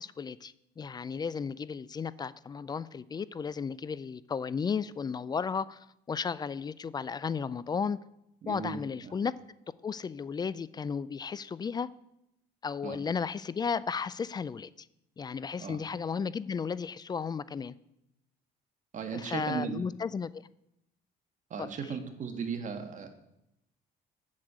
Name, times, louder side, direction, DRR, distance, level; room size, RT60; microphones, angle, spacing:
voice 1, 0.0-8.0 8.5-9.3 9.8-11.9 12.6-14.9 15.2-17.7 19.1-20.4, left 6 dB, 25° left, 18 dB, 0.3 m, -34 dB
voice 2, 8.4-9.1 12.8-13.0 15.6-15.8 18.9-19.8 21.5-23.1, right 6 dB, 45° right, 6 dB, 1.5 m, -36 dB
7.9 x 6.5 x 7.5 m, 0.82 s
cardioid pair, 110°, 17 cm